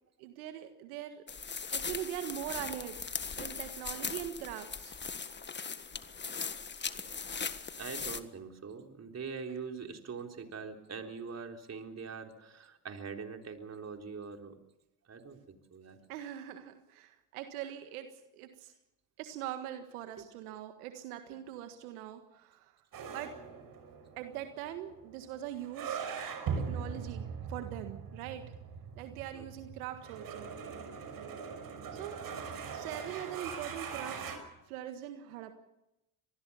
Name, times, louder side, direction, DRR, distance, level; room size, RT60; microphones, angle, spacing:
voice 1, 0.2-1.2 1.7-3.0 3.4-5.0 16.1-18.7 19.2-22.7 23.1-23.3 24.2-26.0 26.6-28.4 29.0-30.5 31.9-32.2 32.7-34.4 34.7-35.5, right 11 dB, 85° right, 7 dB, 1.7 m, -42 dB
sound 1, 1.3-8.2, left 5 dB, 25° left, 1.6 m, -39 dB
voice 2, 7.8-14.6 15.1-16.0 29.3-29.5, right 5 dB, 35° right, 4 dB, 3.8 m, -43 dB
sound 2, 22.9-34.4, right 6 dB, 50° right, 6.1 m, -41 dB
25.0 x 19.5 x 7.1 m, 0.90 s
hypercardioid pair, 70°, 43 cm